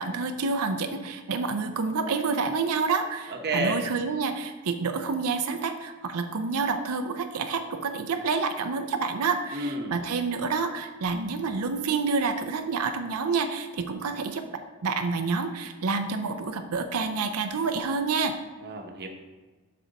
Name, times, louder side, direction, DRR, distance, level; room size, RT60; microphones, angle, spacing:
voice 1, 0.0-14.4 14.8-18.4, right 4 dB, 80° right, 7 dB, 0.6 m, -28 dB
voice 2, 3.3-3.9 9.5-10.0 18.6-19.1, right 2 dB, 50° right, 3 dB, 0.9 m, -30 dB
7.6 x 6.4 x 4.0 m, 1.3 s
head